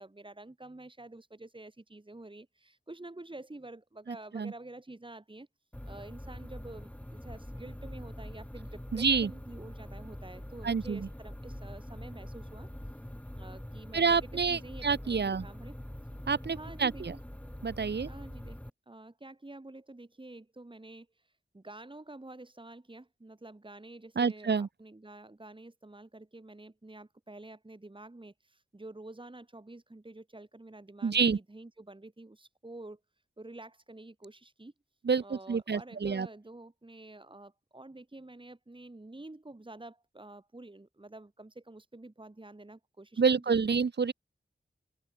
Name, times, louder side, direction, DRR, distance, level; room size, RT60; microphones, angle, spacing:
voice 1, 0.0-5.5 5.8-12.7 13.3-15.7 16.5-17.2 18.0-18.6 18.9-33.0 33.4-34.7 35.2-43.4, right 2 dB, 25° right, 4.2 m, -49 dB
sound 1, 5.7-18.7, equal, 5° left, 2.8 m, -44 dB
voice 2, 8.9-9.3 10.6-11.0 13.9-15.4 16.3-17.1 17.6-18.1 24.2-24.7 31.0-31.4 35.0-36.3 43.2-44.1, right 5 dB, 60° right, 1.0 m, -28 dB
open air
wide cardioid pair, 95°, 19 cm